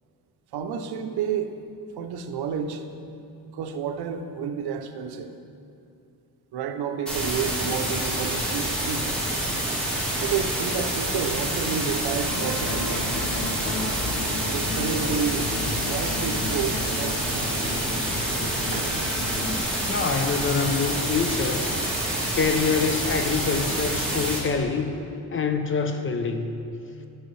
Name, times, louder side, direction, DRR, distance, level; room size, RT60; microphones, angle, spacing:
voice 1, 0.5-1.6 2.0-3.1 3.5-5.3 6.5-9.1 10.2-13.2 14.5-15.5 15.8-17.9 18.7-19.0, right 7 dB, 85° right, 7 dB, 0.6 m, -30 dB
sound 1, 7.1-24.4, right 1 dB, 5° left, 1.5 m, -27 dB
sound 2, 12.2-19.6, left 3 dB, 85° left, 0.8 m, -34 dB
voice 2, 19.8-21.7 22.3-24.9 25.3-26.6, left 5 dB, 35° left, 7 dB, 0.5 m, -25 dB
9.0 x 6.3 x 3.1 m, 2.6 s
cardioid pair, 115°, 38 cm